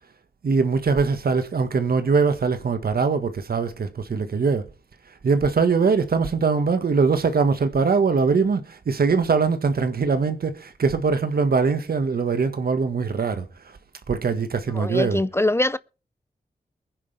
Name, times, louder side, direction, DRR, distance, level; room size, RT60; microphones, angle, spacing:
voice 1, 0.4-4.7 5.2-13.8 14.1-15.2, right 5 dB, 70° right, 1.8 m, -22 dB
voice 2, 14.8-15.8, left 1 dB, 15° left, 0.6 m, -22 dB
22.0 x 10.0 x 3.5 m
cardioid pair, 55°, 16 cm